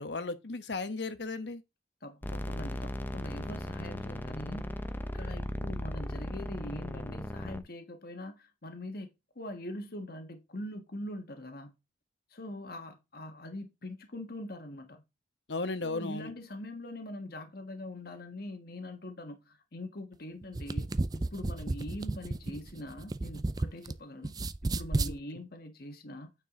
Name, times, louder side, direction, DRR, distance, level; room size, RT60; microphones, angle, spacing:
voice 1, 0.0-1.6 15.5-16.3 25.0-25.1, left 3 dB, 80° left, 1.1 m, -35 dB
voice 2, 2.0-4.7 5.1-11.8 12.3-15.0 15.8-24.3 24.6-26.3, left 1 dB, 60° left, 1.4 m, -43 dB
sound 1, 2.2-7.6, left 1 dB, 10° left, 0.7 m, -37 dB
sound 2, 20.4-23.9 24.2-25.2, right 2 dB, 25° right, 0.4 m, -32 dB
9.2 x 4.7 x 3.7 m
head